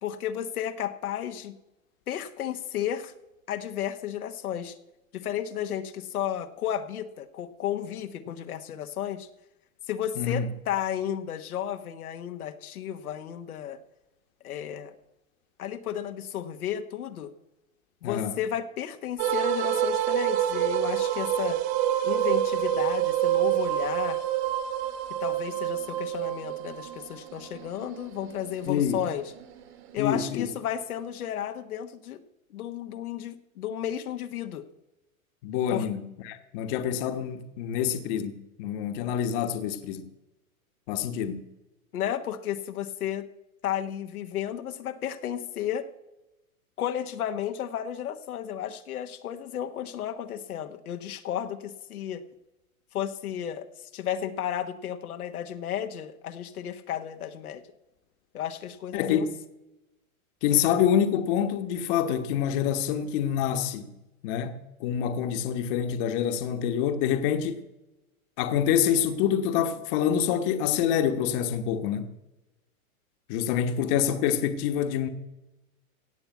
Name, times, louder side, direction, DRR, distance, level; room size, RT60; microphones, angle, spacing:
voice 1, 0.0-1.5 2.1-3.1 3.5-4.8 5.1-9.3 9.9-13.8 14.4-15.0 15.6-17.3 18.0-21.6 22.0-24.2 25.2-29.3 29.9-32.2 32.5-34.7 35.7-35.9 41.9-43.3 43.6-45.9 46.8-52.2 52.9-53.7 53.9-57.6 58.3-59.3, left 10 dB, 80° left, 1.3 m, -33 dB
voice 2, 10.2-10.5 18.0-18.4 28.7-29.0 30.0-30.5 35.4-40.0 40.9-41.5 58.9-59.4 60.4-63.9 64.2-67.6 68.4-72.1 73.3-75.1, left 9 dB, 40° left, 1.3 m, -26 dB
sound 1, 19.2-30.4, right 12 dB, 45° right, 1.9 m, -28 dB
17.0 x 7.0 x 8.3 m
hypercardioid pair, 140°, 44 cm